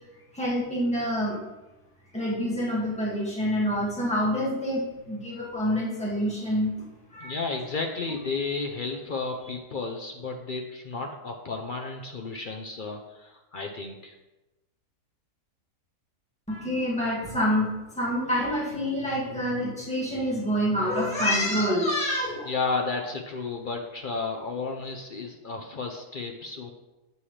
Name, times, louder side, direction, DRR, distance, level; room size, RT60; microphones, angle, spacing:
voice 1, 0.3-1.4 2.1-6.7 7.1-7.4 16.5-22.5, equal, 5° left, -6 dB, 1.9 m, -27 dB
voice 2, 7.2-14.1 22.4-26.7, left 4 dB, 75° left, 2 dB, 0.4 m, -32 dB
8.0 x 7.2 x 3.3 m, 1.0 s
omnidirectional pair, 1.8 m